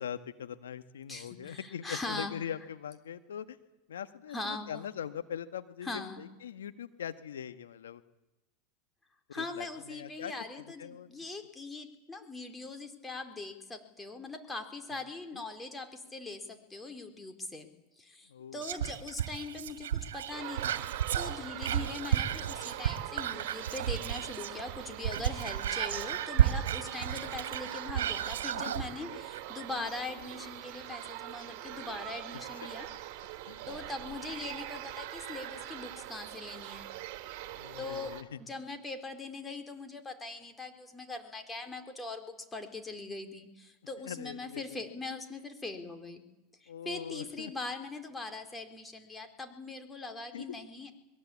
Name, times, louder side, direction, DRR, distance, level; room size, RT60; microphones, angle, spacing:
voice 1, 0.0-3.6 3.9-8.0 9.3-10.3 10.8-11.2 15.3-15.4 18.3-18.6 28.5-28.7 33.5-33.8 37.5-38.4 44.0-44.6 46.7-47.5 50.3-50.4, left 9 dB, 85° left, 11 dB, 1.5 m, -41 dB
voice 2, 1.1-2.3 4.3-4.9 5.8-6.2 9.3-17.7 18.0-20.8 21.1-32.9 33.7-36.9 37.8-46.2 46.6-50.9, left 3 dB, 15° left, 6 dB, 4.0 m, -41 dB
Whispering, 18.6-24.6 24.9-28.9 29.3-29.4, right 10 dB, 80° right, 1.9 m, -32 dB
sound 1, 20.3-38.2, right 14 dB, 60° right, 2.7 m, -43 dB
24.0 x 22.0 x 8.6 m, 0.99 s
hypercardioid pair, 100°, 0 cm